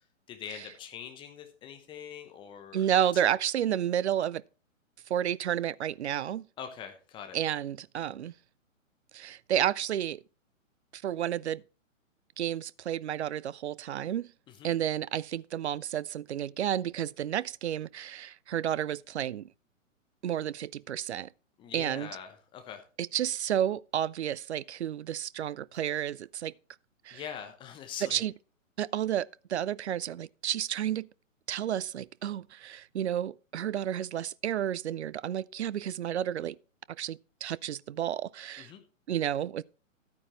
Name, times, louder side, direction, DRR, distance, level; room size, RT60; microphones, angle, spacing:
voice 1, 0.0-2.9 3.1-3.2 6.6-7.4 14.5-14.7 21.6-22.8 27.1-28.2 38.6-38.8, left 8 dB, 10° left, 0.8 m, -43 dB
voice 2, 2.7-4.4 5.1-6.4 7.3-8.3 9.1-10.2 10.9-11.6 12.4-14.3 14.6-19.5 20.2-21.3 21.7-22.1 23.0-26.5 27.1-27.2 28.0-28.3 28.8-31.1 31.5-36.6 37.0-38.7 39.1-39.6, right 10 dB, 55° right, 0.5 m, -31 dB
12.5 x 9.2 x 3.1 m
figure-of-eight pair, 125°, 40 cm